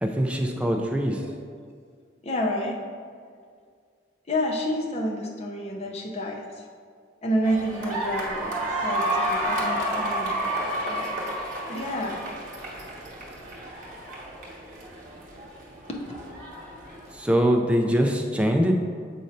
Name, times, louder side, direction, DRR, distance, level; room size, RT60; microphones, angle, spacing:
voice 1, 0.0-1.2 17.1-18.7, equal, 5° right, 2 dB, 0.4 m, -23 dB
voice 2, 2.2-2.8 4.3-6.7 7.2-11.1 11.7-12.2 15.9-16.0 18.0-18.1, equal, 35° left, 0 dB, 0.7 m, -29 dB
sound 1, 7.4-17.2, right 1 dB, 40° right, 1.2 m, -31 dB
7.5 x 2.7 x 5.1 m, 2.1 s
head